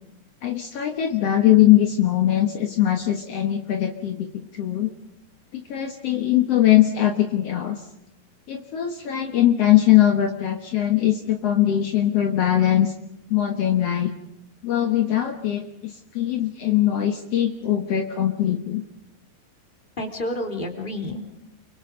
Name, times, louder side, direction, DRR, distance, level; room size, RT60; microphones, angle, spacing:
voice 1, 0.4-4.3 4.5-4.9 5.5-7.8 8.5-12.9 13.3-14.1 14.6-18.8, left 12 dB, 75° left, 4 dB, 1.4 m, -21 dB
voice 2, 20.0-21.2, left 1 dB, 15° left, 3 dB, 2.8 m, -30 dB
30.0 x 24.0 x 5.3 m, 0.79 s
omnidirectional pair, 4.8 m